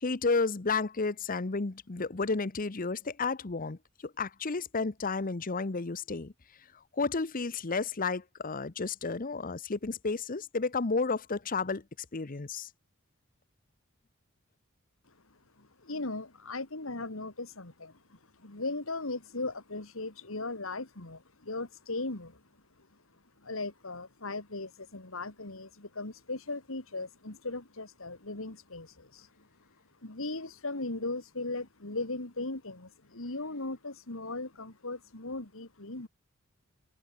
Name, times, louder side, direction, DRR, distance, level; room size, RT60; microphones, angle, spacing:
voice 1, 0.0-3.8 4.0-6.3 7.0-11.8 12.1-12.7, left 4 dB, 40° left, 0.9 m, -32 dB
voice 2, 15.6-22.4 23.4-29.5 30.0-36.1, left 2 dB, 75° left, 2.7 m, -38 dB
head